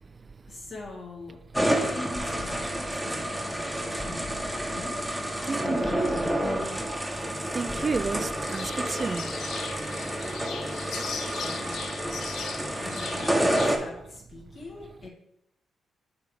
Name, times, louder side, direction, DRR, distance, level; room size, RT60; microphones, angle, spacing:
voice 1, 0.5-1.4 1.8-6.4 11.4-12.4 12.8-15.1, left 3 dB, 55° left, 2.3 m, -43 dB
sound 1, 1.5-13.8, right 1 dB, ahead, 1.1 m, -29 dB
sound 2, 2.2-7.3 7.6-9.4, left 1 dB, 35° left, 1.0 m, -44 dB
voice 2, 5.5-6.4 7.5-9.4 12.9-13.1, right 4 dB, 40° right, 0.3 m, -31 dB
sound 3, 8.4-13.8, left 6 dB, 80° left, 0.5 m, -39 dB
6.8 x 3.4 x 5.0 m
supercardioid pair, 60°, 0 cm